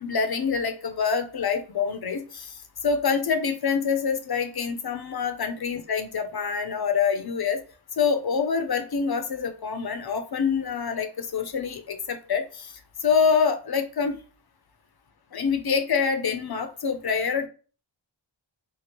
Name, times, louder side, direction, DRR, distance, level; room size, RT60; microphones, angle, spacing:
voice 1, 0.0-2.6 2.8-7.6 8.0-12.7 13.0-14.2 15.3-17.5, left 6 dB, 50° left, 7 dB, 0.5 m, -26 dB
2.9 x 2.5 x 2.9 m, 0.38 s
wide cardioid pair, 50°, 49 cm